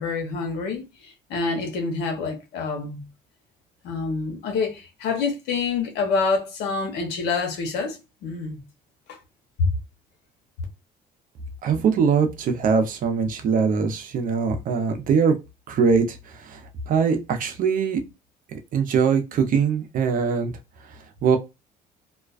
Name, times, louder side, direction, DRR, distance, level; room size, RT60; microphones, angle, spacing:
voice 1, 0.0-3.1 3.8-8.6 9.1-9.2 9.6-9.7, left 4 dB, 85° left, 0.8 m, -27 dB
voice 2, 11.6-15.3 15.7-16.2 16.4-16.6 16.9-18.0 18.7-20.5 21.2-21.4, right 6 dB, 55° right, 0.6 m, -22 dB
2.3 x 2.2 x 2.3 m
cardioid pair, 110°, 17 cm